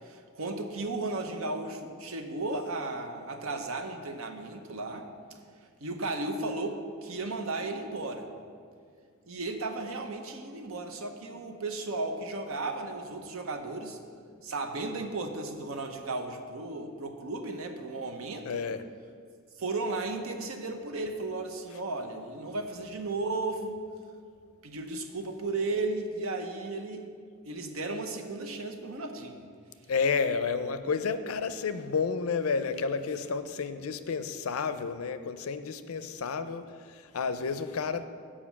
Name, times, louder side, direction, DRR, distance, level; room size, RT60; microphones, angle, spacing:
voice 1, 0.0-5.1 5.8-8.3 9.3-14.0 14.4-18.7 19.6-23.9 24.6-27.1 27.5-29.5, right 2 dB, 80° right, 5 dB, 0.8 m, -35 dB
voice 2, 18.5-18.8 29.9-38.0, left 5 dB, 90° left, 11 dB, 0.5 m, -31 dB
7.3 x 5.0 x 7.0 m, 2.2 s
head